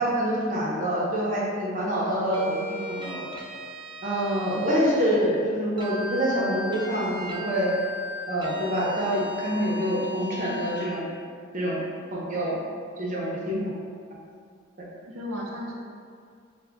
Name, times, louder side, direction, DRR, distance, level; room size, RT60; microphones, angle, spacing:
voice 1, 0.0-3.3 4.0-7.7 8.3-11.1 11.5-11.8 12.1-12.6 13.0-13.6, equal, 40° right, -6 dB, 0.8 m, -26 dB
sound 1, 2.3-5.2 5.8-10.9, left 1 dB, 25° right, 0.3 m, -37 dB
voice 2, 15.1-15.7, equal, 80° right, -1 dB, 0.5 m, -34 dB
6.6 x 2.4 x 2.2 m, 2.2 s
head